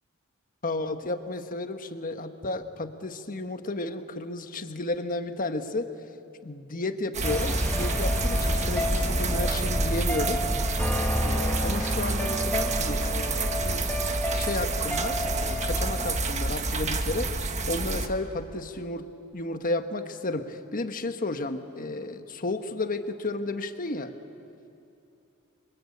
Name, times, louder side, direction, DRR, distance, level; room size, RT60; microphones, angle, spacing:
voice 1, 0.6-5.9 6.4-10.4 11.2-13.8 14.3-19.1 19.3-24.1, left 2 dB, 40° left, 8 dB, 1.4 m, -32 dB
sound 1, 7.1-18.1, right 3 dB, 35° right, 1.5 m, -29 dB
sound 2, 7.2-16.2, equal, 10° left, 1.7 m, -30 dB
28.5 x 24.5 x 8.6 m, 2.8 s
head